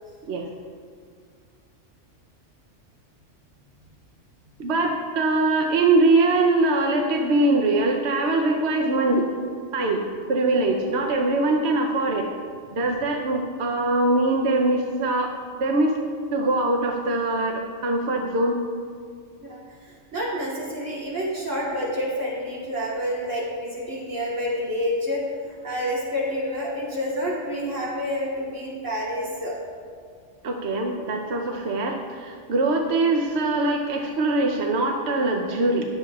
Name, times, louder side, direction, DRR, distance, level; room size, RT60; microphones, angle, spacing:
voice 1, 4.6-9.3 9.7-10.0 10.3-12.3 12.7-15.3 15.6-15.9 16.3-18.6 30.4-35.8, right 2 dB, 65° right, 2 dB, 1.0 m, -22 dB
voice 2, 19.4-29.5, equal, 90° right, -6 dB, 3.2 m, -28 dB
20.5 x 7.7 x 2.4 m, 2.1 s
omnidirectional pair, 1.2 m